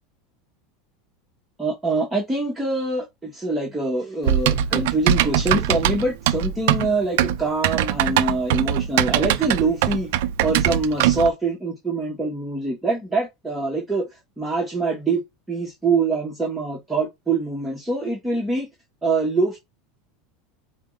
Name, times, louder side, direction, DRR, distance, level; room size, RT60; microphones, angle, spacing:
voice 1, 1.6-10.1 10.4-14.1 14.4-15.2 15.5-18.7 19.0-19.6, right 3 dB, 5° right, 1.1 m, -24 dB
Typing, 4.3-11.3, right 11 dB, 65° right, 0.5 m, -21 dB
4.7 x 2.2 x 3.8 m
supercardioid pair, 165°, 0 cm